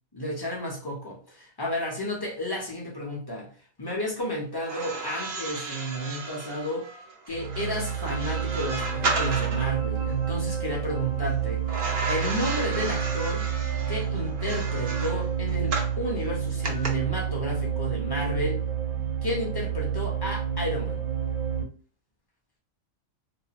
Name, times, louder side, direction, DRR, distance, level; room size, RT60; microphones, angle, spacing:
voice 1, 0.1-3.5 3.8-6.9 7.3-11.6 12.1-13.5 13.9-18.6 19.2-21.0, equal, 25° left, -2 dB, 0.6 m, -32 dB
sound 1, 4.6-9.7 11.7-16.0 16.6-16.9, right 3 dB, 55° right, 0.6 m, -33 dB
sound 2, 7.3-21.6, right 8 dB, 80° right, 1.0 m, -29 dB
2.6 x 2.4 x 2.9 m, 0.40 s
omnidirectional pair, 1.5 m